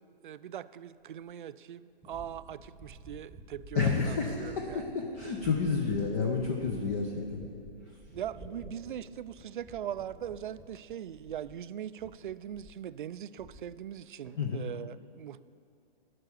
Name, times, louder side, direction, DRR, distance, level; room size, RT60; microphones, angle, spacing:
voice 1, 0.0-4.9 5.9-6.0 8.1-15.4, right 10 dB, 55° right, 15 dB, 0.4 m, -41 dB
sound 1, 2.0-11.7 12.0-12.9 13.1-14.0 14.2-14.8, right 1 dB, ahead, 1.1 m, -51 dB
voice 2, 3.7-7.5 14.4-14.6, left 5 dB, 15° left, 2 dB, 0.4 m, -30 dB
12.0 x 5.9 x 8.2 m, 2.3 s
hypercardioid pair, 140°, 31 cm